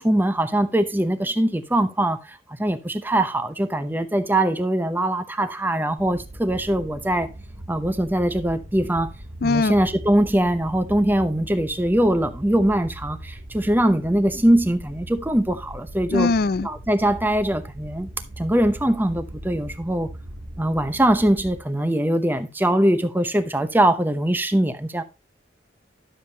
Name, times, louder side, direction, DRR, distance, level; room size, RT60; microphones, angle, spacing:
voice 1, 0.0-7.3 7.7-9.1 9.4-16.3 16.6-18.1 18.4-20.1 20.6-25.0, right 1 dB, 10° right, 0.8 m, -22 dB
sound 1, 6.0-21.6, right 1 dB, 75° right, 1.5 m, -40 dB
voice 2, 9.4-9.8 16.1-16.7, left 3 dB, 55° left, 0.4 m, -21 dB
11.5 x 7.3 x 2.9 m
head